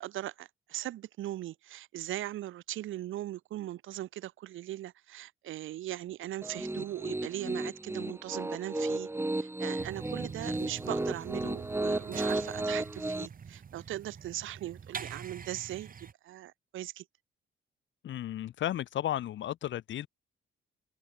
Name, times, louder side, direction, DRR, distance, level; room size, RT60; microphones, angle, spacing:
voice 1, 0.0-9.1 9.3-17.0, right 14 dB, 80° right, 4.6 m, -39 dB
Piano, 6.4-13.3, right 2 dB, 10° right, 2.1 m, -34 dB
sound 1, 9.8-16.1, right 6 dB, 45° right, 3.5 m, -45 dB
voice 2, 18.0-20.1, left 12 dB, 70° left, 1.7 m, -34 dB
cardioid pair, 90°, 20 cm